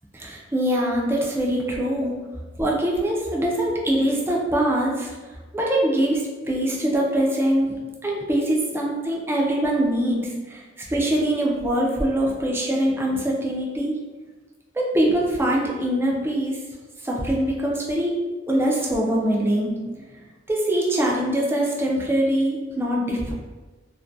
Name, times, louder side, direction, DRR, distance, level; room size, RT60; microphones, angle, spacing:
voice 1, 0.1-2.1 2.6-5.1 5.5-7.8 8.0-10.6 10.9-14.0 14.7-16.6 17.0-18.1 18.5-20.1 20.5-23.3, right 1 dB, 10° right, -3 dB, 0.3 m, -23 dB
2.2 x 2.1 x 2.5 m, 1.3 s
head